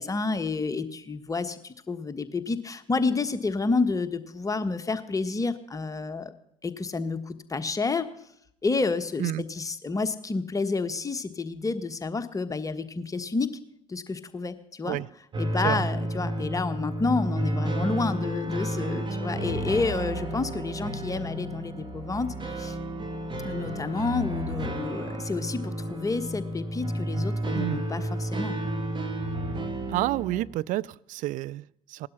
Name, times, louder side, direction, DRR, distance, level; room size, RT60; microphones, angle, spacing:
voice 1, 0.0-6.3 6.6-8.1 8.6-13.6 13.9-15.0 15.4-22.8 23.4-28.6, left 3 dB, 20° left, 10 dB, 1.3 m, -29 dB
sound 1, 15.3-30.4, right 1 dB, 30° right, 2.4 m, -31 dB
voice 2, 29.9-32.1, right 16 dB, 50° right, 20 dB, 0.5 m, -29 dB
17.5 x 12.0 x 5.7 m, 0.73 s
figure-of-eight pair, 55°, 17 cm